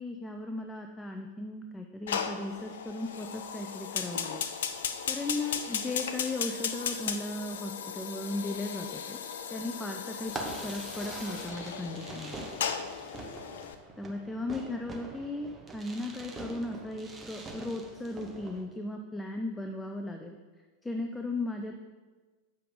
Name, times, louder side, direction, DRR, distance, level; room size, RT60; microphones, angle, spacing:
voice 1, 0.0-4.4 5.1-9.2 9.5-10.3 10.6-12.4 14.0-20.4 20.8-21.7, left 2 dB, 10° left, 3 dB, 0.5 m, -36 dB
Fire, 2.1-13.7, left 7 dB, 60° left, 0.5 m, -36 dB
Fireworks, 10.3-18.6, right 2 dB, 20° right, 0.9 m, -44 dB
7.6 x 5.6 x 3.7 m, 1.3 s
figure-of-eight pair, 90°, 0 cm